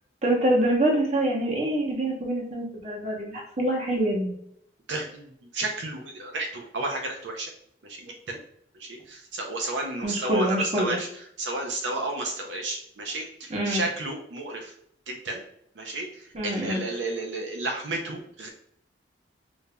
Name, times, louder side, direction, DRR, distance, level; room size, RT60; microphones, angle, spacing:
voice 1, 0.2-4.4 10.0-11.0 13.5-13.8 16.3-16.8, right 1 dB, 35° right, -1 dB, 0.9 m, -25 dB
voice 2, 4.9-7.5 7.8-8.4 8.7-11.1 11.4-14.7 15.1-15.4 15.8-18.5, right 2 dB, 80° right, 1 dB, 0.6 m, -32 dB
5.0 x 2.6 x 2.2 m, 0.69 s
head